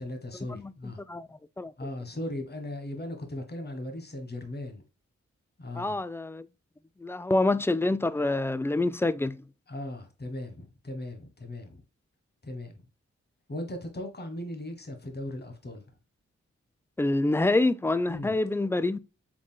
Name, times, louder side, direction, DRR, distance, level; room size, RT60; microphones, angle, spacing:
voice 1, 0.0-1.0 1.8-4.8 5.6-6.0 9.7-11.8 12.4-12.7 13.5-15.8 18.1-18.4, left 1 dB, 35° left, 1.4 m, -38 dB
voice 2, 1.1-1.7 5.8-6.5 7.0-9.4 17.0-19.0, left 2 dB, 10° left, 0.3 m, -26 dB
4.9 x 3.6 x 2.2 m
cardioid pair, 50°, 29 cm